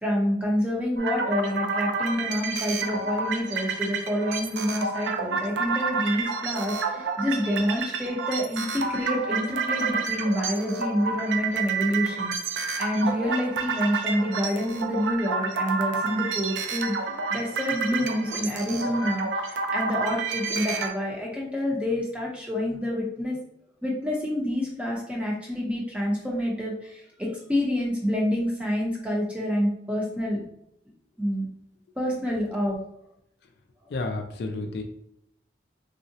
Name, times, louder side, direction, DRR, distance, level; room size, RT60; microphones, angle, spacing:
voice 1, 0.0-12.3 12.8-17.0 17.3-23.4 23.8-30.4 31.2-31.5 32.0-32.8, equal, 5° right, -3 dB, 0.6 m, -27 dB
sound 1, 1.0-20.9, right 4 dB, 75° right, 0.4 m, -29 dB
voice 2, 33.9-34.8, left 2 dB, 60° left, 5 dB, 0.3 m, -31 dB
3.5 x 2.0 x 2.7 m, 0.76 s
head